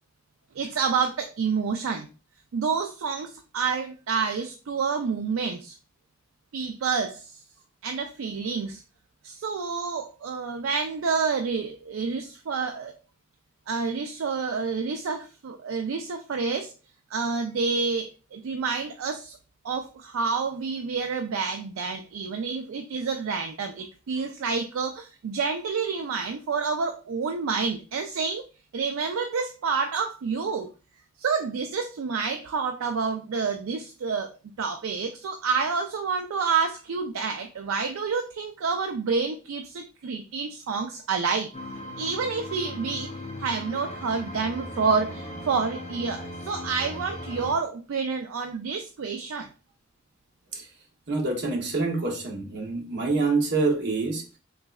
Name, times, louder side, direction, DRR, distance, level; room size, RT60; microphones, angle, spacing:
voice 1, 0.6-2.1 2.5-5.8 6.5-7.3 7.8-8.8 9.2-12.9 13.7-16.7 17.1-19.4 19.6-28.4 28.7-30.7 31.2-41.5 42.0-43.1 43.4-49.5, right 5 dB, 70° right, 0.4 m, -28 dB
sound 1, 41.5-47.5, left 1 dB, 30° left, 0.7 m, -38 dB
voice 2, 51.1-54.2, right 3 dB, 55° right, 0.9 m, -26 dB
3.7 x 3.1 x 2.3 m
head